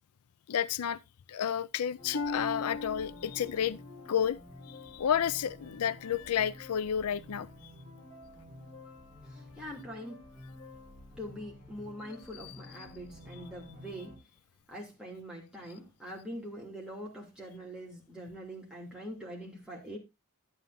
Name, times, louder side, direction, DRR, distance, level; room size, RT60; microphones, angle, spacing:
voice 1, 0.5-1.0 1.3-3.8 4.1-4.4 4.7-7.7 12.4-12.6, left 9 dB, 90° left, 0.4 m, -31 dB
sound 1, 2.0-14.2, left 2 dB, 25° left, 5.7 m, -50 dB
Harp, 2.1-5.9 6.4-6.8 7.5-7.6, left 3 dB, 65° left, 0.7 m, -41 dB
voice 2, 9.5-10.2 11.2-14.2 14.7-20.0, equal, 5° right, 2.9 m, -43 dB
12.0 x 9.3 x 2.6 m
head